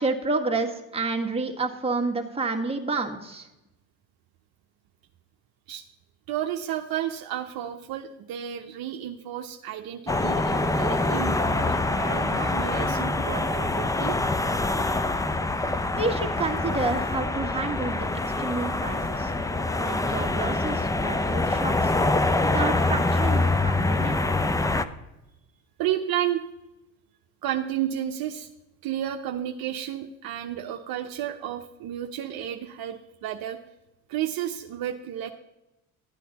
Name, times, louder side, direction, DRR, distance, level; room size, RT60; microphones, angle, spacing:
voice 1, 0.0-3.5 15.9-18.1 18.4-19.3 19.8-21.9 22.4-24.6, right 3 dB, 15° right, 0 dB, 1.6 m, -29 dB
voice 2, 6.3-14.2 25.8-26.4 27.4-28.5 28.8-33.6 34.1-35.3, right 11 dB, 60° right, 4 dB, 0.8 m, -32 dB
sound 1, 10.1-24.8, left 2 dB, 10° left, 0.5 m, -25 dB
12.5 x 8.3 x 4.1 m, 0.94 s
supercardioid pair, 80°, 41 cm